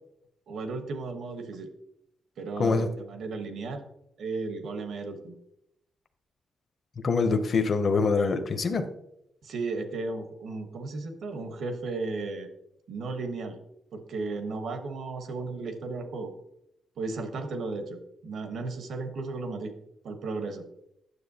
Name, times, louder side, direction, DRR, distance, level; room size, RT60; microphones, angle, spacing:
voice 1, 0.5-1.7 2.4-3.8 4.2-5.4 9.4-12.5 12.9-13.6 13.9-16.3 17.0-19.7 20.0-20.6, right 3 dB, 65° right, 7 dB, 1.0 m, -35 dB
voice 2, 7.0-8.8, left 4 dB, 40° left, 7 dB, 0.6 m, -24 dB
9.6 x 7.1 x 2.7 m, 0.79 s
wide cardioid pair, 155°, 0 cm